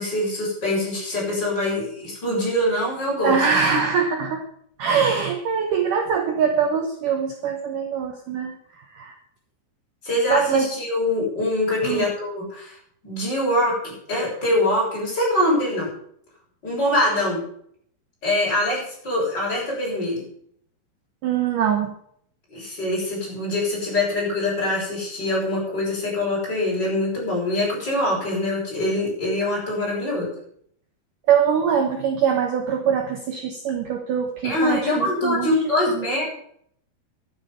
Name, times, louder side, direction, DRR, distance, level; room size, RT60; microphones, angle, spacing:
voice 1, 0.0-3.4 10.0-12.7 13.0-15.9 16.6-17.4 18.2-20.2 22.5-30.3 34.4-36.3, left 1 dB, 25° left, -4 dB, 7.5 m, -24 dB
voice 2, 3.2-4.4 4.8-8.6 8.9-9.2 10.3-10.7 11.8-12.1 21.2-21.9 31.3-36.1, right 7 dB, 65° right, 5 dB, 2.3 m, -23 dB
11.5 x 9.9 x 7.1 m, 0.66 s
omnidirectional pair, 4.8 m